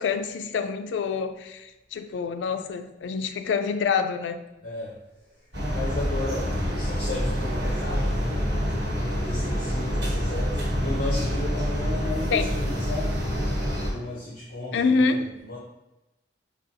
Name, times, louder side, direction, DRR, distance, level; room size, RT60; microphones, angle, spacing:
voice 1, 0.0-4.4 12.3-12.5 14.7-15.3, left 5 dB, 75° left, 9 dB, 0.3 m, -26 dB
voice 2, 4.6-5.0 5.3-13.2 13.7-15.6, left 2 dB, 55° left, -6 dB, 0.8 m, -35 dB
sound 1, 5.5-13.9, equal, 70° right, 1.3 m, -27 dB
4.9 x 2.3 x 2.8 m, 0.98 s
head